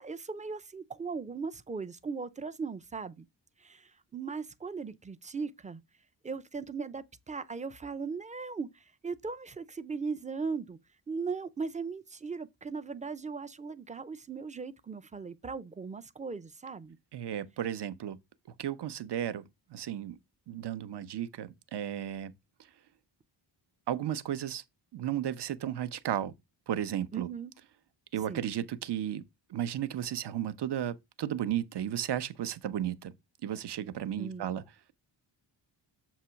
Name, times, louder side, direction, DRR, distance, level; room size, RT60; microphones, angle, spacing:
voice 1, 0.0-3.3 3.6-5.8 6.2-10.8 11.1-17.0 27.1-27.5 28.3-28.5 34.2-34.5, right 5 dB, 15° right, 0.4 m, -38 dB
voice 2, 17.1-18.2 18.6-19.4 19.7-20.2 20.5-22.3 23.9-24.6 24.9-26.3 26.7-27.3 28.1-29.2 29.5-33.1 33.4-34.6, right 10 dB, 60° right, 0.8 m, -34 dB
7.3 x 2.9 x 5.6 m
wide cardioid pair, 145°, 46 cm